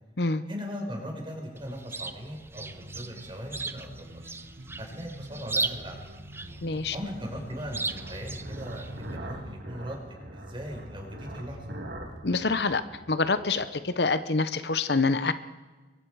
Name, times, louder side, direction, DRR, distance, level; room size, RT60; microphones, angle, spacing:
voice 1, 0.5-4.3 4.8-6.0 6.9-11.7, equal, 30° right, 2 dB, 4.8 m, -39 dB
Chirp tweet, 1.6-9.2, right 3 dB, 15° right, 0.6 m, -37 dB
sound 1, 2.6-9.6, right 1 dB, 70° right, 2.0 m, -46 dB
sound 2, 4.5-14.1, right 1 dB, 85° right, 3.3 m, -44 dB
voice 2, 6.6-7.0 12.2-12.8 13.1-15.3, left 3 dB, 65° left, 12 dB, 0.9 m, -26 dB
23.5 x 23.0 x 4.9 m, 1.2 s
head